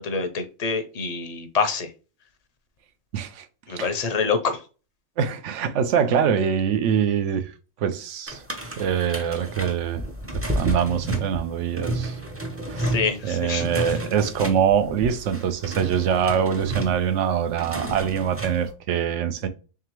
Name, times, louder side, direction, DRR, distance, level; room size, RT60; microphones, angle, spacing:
voice 1, 0.0-1.9 3.7-4.6 12.8-13.9, left 5 dB, 40° left, 0.6 m, -26 dB
voice 2, 3.1-3.9 5.2-10.1 10.3-12.2 12.7-13.0 13.2-19.5, right 8 dB, 80° right, 1.0 m, -24 dB
sound 1, 8.3-18.7, right 1 dB, 15° right, 0.5 m, -31 dB
3.7 x 3.3 x 3.0 m
omnidirectional pair, 1.2 m